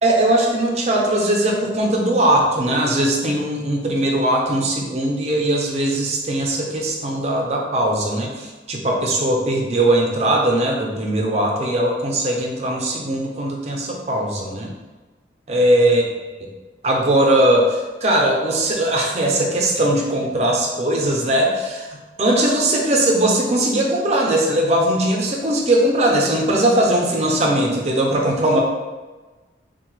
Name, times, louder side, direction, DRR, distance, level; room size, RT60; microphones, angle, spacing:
voice 1, 0.0-14.7 15.5-16.1 16.8-28.6, right 1 dB, 35° right, 0 dB, 0.5 m, -19 dB
3.5 x 2.2 x 3.0 m, 1.2 s
head